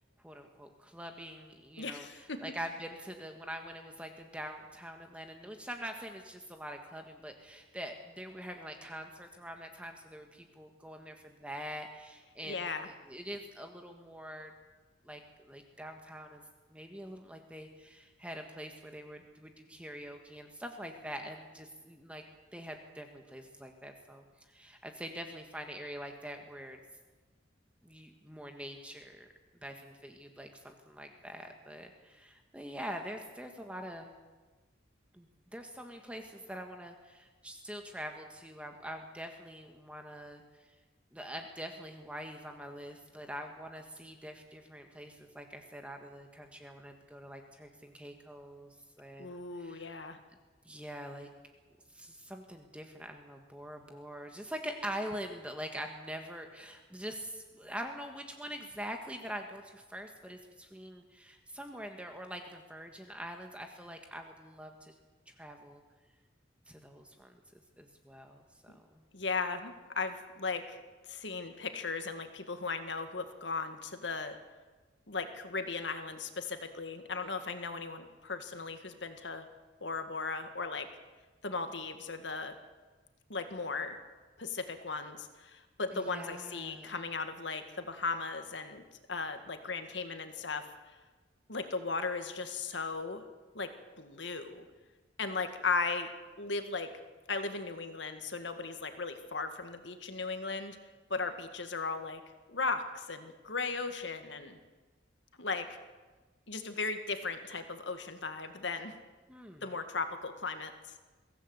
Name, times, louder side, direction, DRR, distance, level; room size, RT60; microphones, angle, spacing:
voice 1, 0.2-12.7 13.0-14.5 15.0-15.2 15.5-16.4 16.7-22.2 22.5-26.8 27.8-29.3 29.6-34.1 35.1-40.7 41.1-48.7 49.0-50.0 50.6-51.3 51.9-64.9 65.4-65.8 66.7-67.4 67.8-69.0 85.9-86.9 109.3-109.6, equal, 5° right, 4 dB, 1.5 m, -44 dB
voice 2, 1.8-2.4 12.4-12.9 49.2-50.2 69.1-70.8 71.1-74.4 75.1-79.5 79.8-80.9 81.4-82.5 83.3-84.0 84.4-88.8 89.1-90.6 91.5-93.2 93.5-93.7 94.0-94.7 95.2-96.1 96.4-96.9 97.3-100.8 101.1-102.2 102.5-104.6 105.4-105.8 106.5-108.9 109.6-110.7, left 4 dB, 75° left, 7 dB, 2.0 m, -37 dB
23.0 x 16.0 x 8.1 m, 1.3 s
head